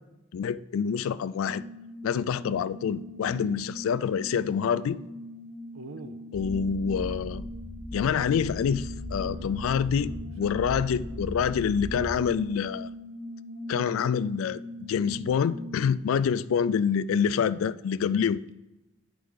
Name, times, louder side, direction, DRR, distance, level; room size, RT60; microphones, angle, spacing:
voice 1, 0.3-1.6 2.0-5.0 6.3-7.4 7.9-10.1 10.4-12.9 13.7-18.4, left 7 dB, 75° left, 0.3 m, -27 dB
sound 1, 1.5-16.0, left 1 dB, 50° right, 1.7 m, -41 dB
voice 2, 3.3-3.6 5.7-6.2 9.1-9.6 9.9-10.3 10.7-10.8 16.1-16.4, right 4 dB, 65° right, 0.5 m, -45 dB
sound 2, 6.3-12.2, left 1 dB, 20° left, 0.9 m, -38 dB
10.0 x 4.7 x 3.9 m
head